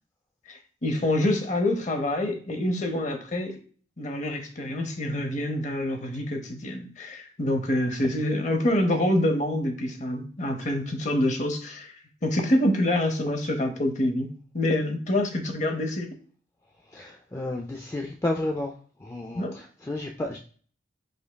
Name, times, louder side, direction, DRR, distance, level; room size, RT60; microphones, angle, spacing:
voice 1, 0.5-3.6 4.0-11.9 12.2-16.1 19.3-19.6, left 1 dB, 40° left, 5 dB, 0.7 m, -26 dB
voice 2, 16.9-18.7 19.0-20.4, left 1 dB, 15° left, 1 dB, 0.3 m, -31 dB
5.1 x 3.4 x 2.2 m, 0.43 s
head